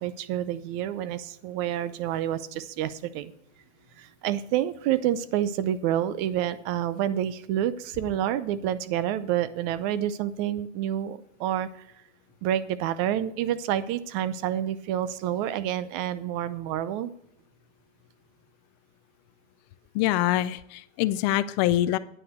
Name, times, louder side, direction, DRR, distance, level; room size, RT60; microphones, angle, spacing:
voice 1, 0.0-3.3 4.0-11.9 12.4-17.1, right 11 dB, 45° right, 15 dB, 0.6 m, -28 dB
voice 2, 19.9-22.0, left 14 dB, 40° left, 14 dB, 0.4 m, -24 dB
9.5 x 5.8 x 7.8 m, 0.76 s
supercardioid pair, 140°, 33 cm